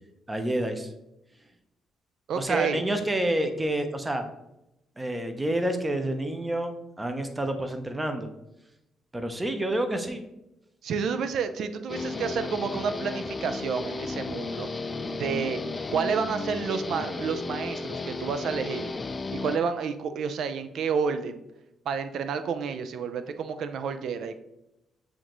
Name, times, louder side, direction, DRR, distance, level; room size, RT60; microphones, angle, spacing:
voice 1, 0.3-0.9 2.4-4.2 5.0-8.3 9.1-10.2, right 1 dB, 15° right, 6 dB, 0.6 m, -28 dB
voice 2, 2.3-2.8 10.8-14.7 15.1-15.6 15.9-18.9 19.3-21.4 21.9-24.4, right 6 dB, 70° right, 10 dB, 0.4 m, -30 dB
Guitar, 11.9-19.6, left 3 dB, 30° left, 0.3 m, -34 dB
7.1 x 2.5 x 3.0 m, 0.89 s
cardioid pair, 90°, 0 cm